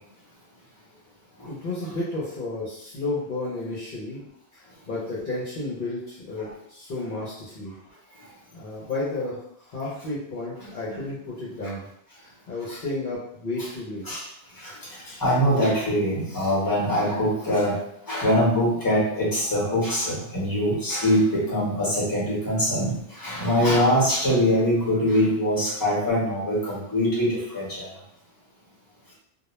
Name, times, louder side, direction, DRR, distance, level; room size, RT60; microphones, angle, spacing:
voice 1, 1.4-4.2 4.5-7.7 8.5-9.4 9.7-11.9 12.2-14.3, left 2 dB, 60° left, -7 dB, 0.8 m, -32 dB
voice 2, 14.6-17.8 18.1-27.9, equal, 20° left, -7 dB, 1.0 m, -23 dB
2.2 x 2.1 x 3.0 m, 0.74 s
omnidirectional pair, 1.0 m